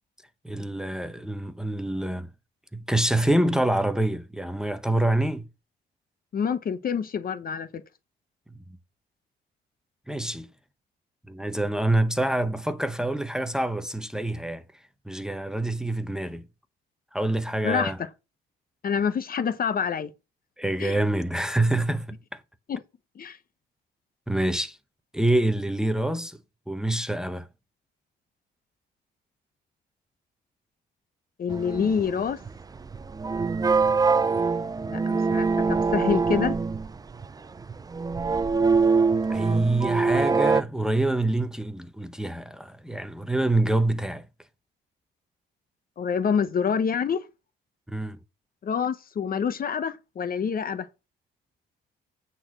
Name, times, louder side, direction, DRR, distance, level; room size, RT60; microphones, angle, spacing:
voice 1, 0.4-2.3 2.7-5.4 10.1-10.5 11.3-14.6 15.1-16.4 17.1-18.0 20.6-22.4 24.3-24.8 25.1-26.4 26.7-27.5 39.3-44.2 47.9-48.2, right 1 dB, 5° right, 0.8 m, -26 dB
voice 2, 6.3-7.8 17.6-17.9 18.8-20.1 20.8-21.0 22.7-22.8 23.2-23.4 31.4-32.4 34.9-36.5 46.0-47.2 48.6-50.9, left 7 dB, 45° left, 0.9 m, -27 dB
sound 1, 31.5-40.6, right 4 dB, 20° right, 0.4 m, -24 dB
8.9 x 4.1 x 5.9 m
cardioid pair, 90°, 20 cm